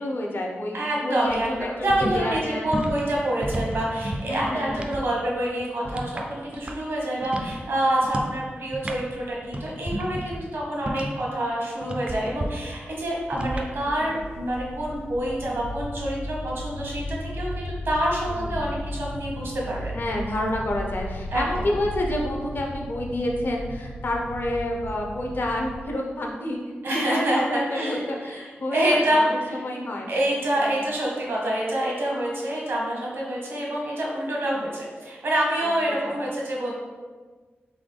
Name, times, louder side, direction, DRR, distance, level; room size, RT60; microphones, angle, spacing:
voice 1, 0.0-2.7 4.3-5.0 13.8-14.1 18.3-18.7 19.9-29.3 29.6-30.1 30.6-30.8 35.6-35.7 36.1-36.2, left 1 dB, 55° left, 0 dB, 0.7 m, -29 dB
voice 2, 0.7-20.0 21.3-21.7 26.8-29.6 30.1-36.7, right 1 dB, 75° right, -3 dB, 1.2 m, -27 dB
sound 1, 1.2-5.0 5.3-7.0 7.2-7.6 8.0-8.4 8.6-11.3 11.8-12.5 13.3-13.7, right 1 dB, 30° right, 0.4 m, -32 dB
sound 2, 12.8-25.9, equal, 85° left, 0.4 m, -35 dB
3.9 x 3.6 x 3.3 m, 1.4 s
wide cardioid pair, 90°, 4 cm